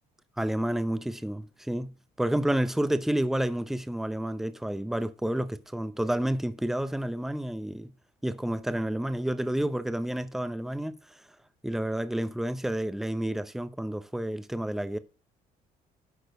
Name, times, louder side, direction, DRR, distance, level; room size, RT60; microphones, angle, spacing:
voice 1, 0.4-7.9 8.2-11.2 11.6-15.0, right 1 dB, ahead, 0.7 m, -30 dB
12.0 x 4.4 x 5.2 m
cardioid pair, 110°, 17 cm